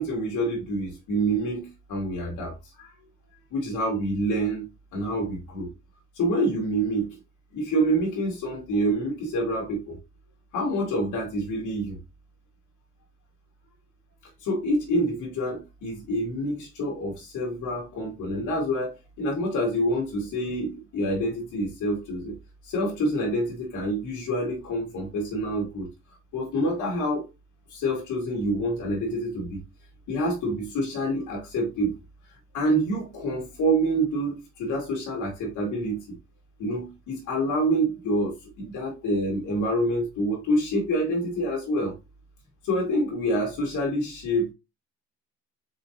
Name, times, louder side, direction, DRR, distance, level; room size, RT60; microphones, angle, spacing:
voice 1, 0.0-2.9 3.5-5.7 6.2-7.2 7.5-10.0 10.5-12.0 14.4-22.4 22.6-25.9 26.3-27.3 27.7-29.6 30.1-31.9 32.5-36.2 36.6-42.0 42.6-44.5, right 1 dB, 80° left, 2.0 m, -27 dB
4.3 x 4.1 x 2.9 m
cardioid pair, 90°, 30 cm